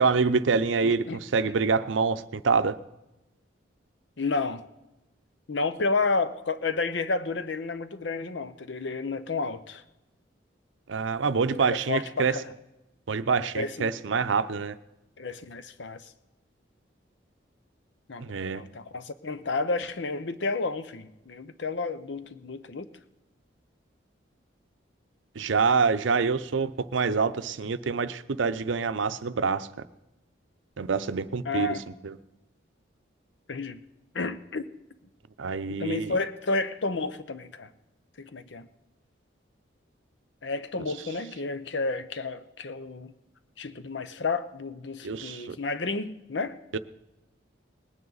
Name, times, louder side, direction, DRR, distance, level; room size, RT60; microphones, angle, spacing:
voice 1, 0.0-2.8 10.9-12.4 13.1-14.8 18.2-18.6 25.4-29.7 30.8-32.2 35.4-36.2 45.0-45.6 46.7-46.8, right 5 dB, 85° right, 0.6 m, -26 dB
voice 2, 0.8-1.2 4.2-4.6 5.5-9.8 11.6-12.4 13.5-13.9 15.2-16.1 18.1-18.3 18.5-22.9 31.4-31.8 33.5-33.8 34.1-34.6 35.8-37.7 38.2-38.7 40.4-43.1 43.6-46.6, left 3 dB, 70° left, 0.8 m, -31 dB
19.5 x 9.6 x 4.0 m
head